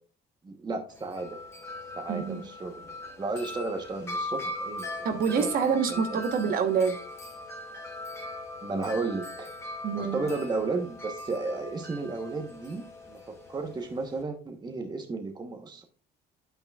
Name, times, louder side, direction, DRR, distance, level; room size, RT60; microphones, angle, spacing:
voice 1, 0.4-1.4 2.0-4.9 5.4-5.5 5.9-6.2 8.6-9.6 9.9-15.8, right 3 dB, 25° right, 5 dB, 1.0 m, -33 dB
Wind chime, 0.9-14.2, left 2 dB, 15° left, 2.1 m, -40 dB
voice 2, 2.1-2.4 5.0-7.0 9.8-10.2, right 6 dB, 60° right, 7 dB, 1.2 m, -26 dB
9.0 x 8.8 x 2.4 m, 0.42 s
cardioid pair, 110°, 17 cm